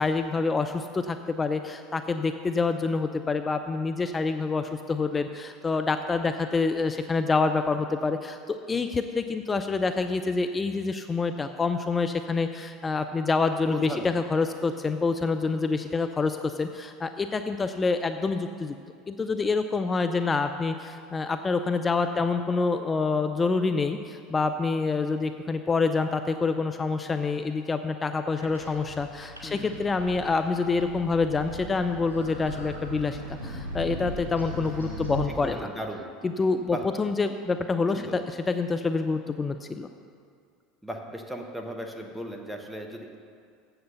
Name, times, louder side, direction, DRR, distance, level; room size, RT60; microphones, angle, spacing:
voice 1, 0.0-18.8 19.1-35.7 36.2-39.9, left 4 dB, 25° left, 8 dB, 0.4 m, -27 dB
voice 2, 13.7-14.1 22.1-22.3 29.4-29.8 34.6-36.1 36.7-36.8 37.9-38.2 40.8-43.2, equal, ahead, 2 dB, 1.2 m, -37 dB
sound 1, 28.4-35.2, equal, 85° right, 2.5 m, -38 dB
7.9 x 7.8 x 6.7 m, 2.3 s
hypercardioid pair, 75°, 0 cm